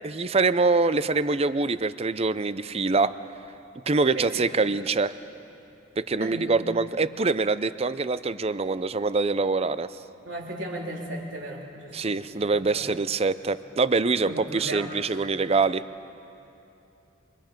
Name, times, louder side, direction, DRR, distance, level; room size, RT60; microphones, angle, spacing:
voice 1, 0.0-3.1 3.9-5.1 6.0-9.9 11.9-15.8, right 3 dB, 30° right, 14 dB, 0.5 m, -24 dB
voice 2, 4.1-4.4 6.2-6.5 10.2-12.1 12.4-13.0 14.3-15.2, right 1 dB, 65° right, -2 dB, 3.7 m, -36 dB
29.0 x 26.0 x 5.3 m, 2.8 s
head